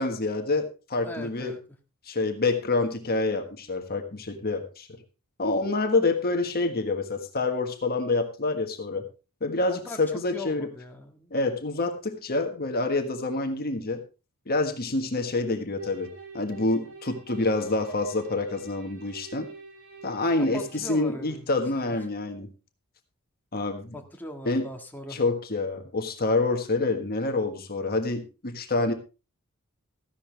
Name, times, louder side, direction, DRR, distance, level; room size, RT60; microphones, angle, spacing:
voice 1, 0.0-1.5 2.0-5.0 5.4-9.1 9.4-10.7 11.3-14.0 14.5-19.5 20.0-22.5 23.5-24.0 24.4-24.7 25.1-28.9, left 3 dB, 45° left, 6 dB, 1.5 m, -27 dB
voice 2, 1.0-1.6 9.7-10.0 10.3-11.3 20.4-21.6 23.9-25.2, left 1 dB, 10° left, 2 dB, 1.8 m, -40 dB
sound 1, 15.8-20.8, right 4 dB, 65° right, 6.0 m, -46 dB
14.5 x 11.5 x 3.4 m, 0.31 s
head